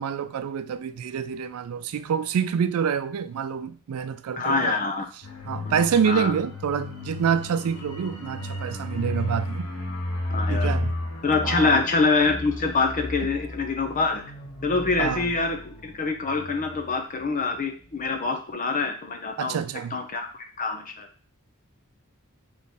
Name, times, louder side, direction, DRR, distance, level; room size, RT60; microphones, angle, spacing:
voice 1, 0.0-4.8 5.5-9.7 10.5-11.0 11.4-11.8 15.0-15.3 19.4-20.0, right 7 dB, 80° right, 0.3 m, -27 dB
voice 2, 4.4-5.1 5.6-6.3 10.3-10.7 11.2-14.2 14.6-19.6 19.9-20.3 20.6-21.1, left 4 dB, 40° left, 0.6 m, -25 dB
sound 1, 5.2-17.6 17.9-18.1, left 1 dB, 70° left, 1.0 m, -33 dB
3.5 x 3.1 x 4.1 m
head